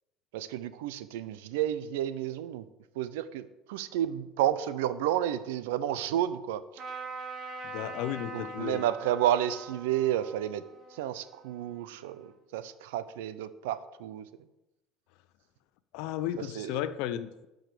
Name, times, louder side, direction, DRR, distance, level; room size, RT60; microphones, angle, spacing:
voice 1, 0.3-2.6 3.0-6.6 8.3-10.6 10.9-14.2 16.6-16.7, right 11 dB, 80° right, 14 dB, 0.7 m, -31 dB
Trumpet, 6.8-12.3, right 3 dB, 45° right, 2.7 m, -43 dB
voice 2, 7.6-8.9 15.9-17.5, left 11 dB, 70° left, 13 dB, 0.7 m, -34 dB
12.0 x 5.1 x 6.8 m, 0.97 s
hypercardioid pair, 80°, 0 cm